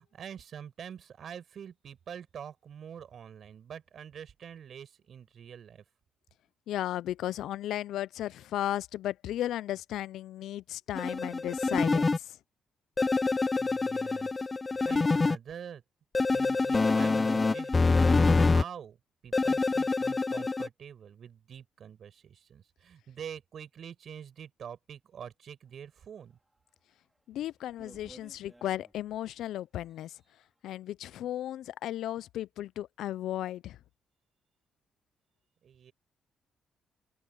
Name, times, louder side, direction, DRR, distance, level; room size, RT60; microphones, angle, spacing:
voice 1, 0.0-5.8 13.6-14.5 14.8-15.8 16.3-19.0 19.2-26.4 35.6-35.9, right 8 dB, 60° right, 6.1 m, -46 dB
voice 2, 6.7-12.4 27.3-30.2 30.6-33.8, left 12 dB, 80° left, 0.5 m, -35 dB
sound 1, 10.9-12.2 13.0-15.4 16.1-18.6 19.3-20.7, left 3 dB, 25° left, 0.6 m, -26 dB
sound 2, 26.5-26.6 27.1-27.2 27.6-29.3 29.8-30.3, right 1 dB, 10° right, 4.7 m, -56 dB
open air
cardioid pair, 90°, 0 cm